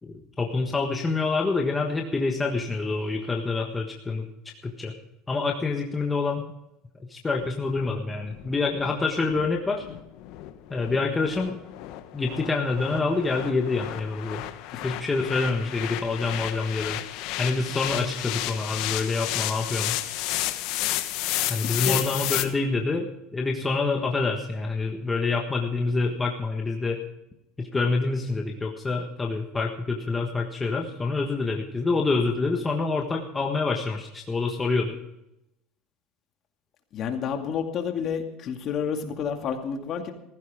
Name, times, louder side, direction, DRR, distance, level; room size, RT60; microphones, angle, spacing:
voice 1, 0.0-4.3 4.6-4.9 5.3-6.4 7.0-9.8 10.7-11.6 12.1-14.4 14.8-17.0 17.4-19.9 21.5-27.0 27.6-35.0, left 3 dB, 15° left, 1 dB, 1.4 m, -27 dB
sound 1, 7.4-22.5, left 15 dB, 60° left, 1.2 m, -32 dB
voice 2, 21.6-22.0 36.9-40.1, left 7 dB, 40° left, 4 dB, 2.3 m, -30 dB
16.0 x 15.0 x 3.7 m, 0.85 s
supercardioid pair, 140°, 0 cm